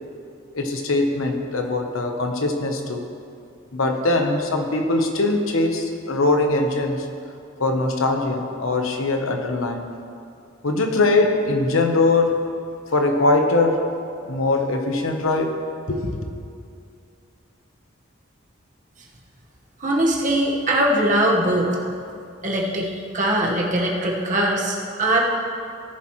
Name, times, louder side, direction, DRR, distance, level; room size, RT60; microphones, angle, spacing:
voice 1, 0.5-3.1 3.7-7.1 7.6-9.9 10.6-12.4 12.9-13.8 14.2-15.6 15.9-16.3, left 2 dB, 85° left, 4 dB, 1.1 m, -21 dB
voice 2, 19.8-21.8 22.4-25.2, right 1 dB, 40° right, -2 dB, 1.5 m, -21 dB
17.5 x 7.2 x 3.2 m, 2.4 s
head